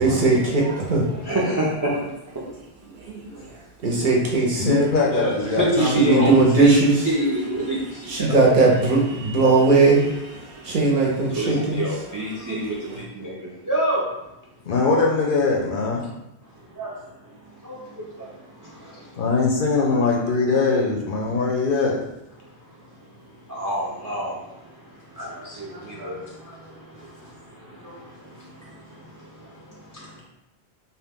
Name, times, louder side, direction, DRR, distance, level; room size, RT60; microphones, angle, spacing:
voice 1, 0.0-1.4 3.1-3.4 3.8-4.8 6.0-6.9 8.1-11.8, right 3 dB, 55° right, -2 dB, 0.7 m, -19 dB
voice 2, 1.3-1.9 5.1-7.8 8.2-8.3 11.4-12.7 13.2-13.3 13.7-14.0 16.8-16.9 19.8-19.9 23.5-24.3 25.2-25.3 26.0-26.1, right 1 dB, 35° right, -5 dB, 0.3 m, -24 dB
voice 3, 4.6-6.4 14.7-16.1 19.2-22.0, left 4 dB, 60° left, -2 dB, 0.6 m, -22 dB
2.7 x 2.1 x 3.4 m, 0.90 s
omnidirectional pair, 1.1 m